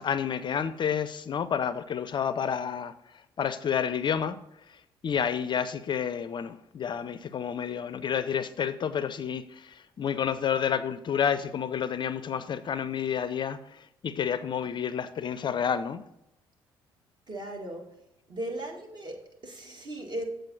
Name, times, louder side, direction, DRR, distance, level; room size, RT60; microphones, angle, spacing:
voice 1, 0.0-4.4 4.7-16.0, left 8 dB, 40° left, 0.4 m, -30 dB
voice 2, 17.3-17.9 18.3-20.3, right 1 dB, 35° right, 1.8 m, -37 dB
7.5 x 5.0 x 5.9 m
figure-of-eight pair, 45°, 12 cm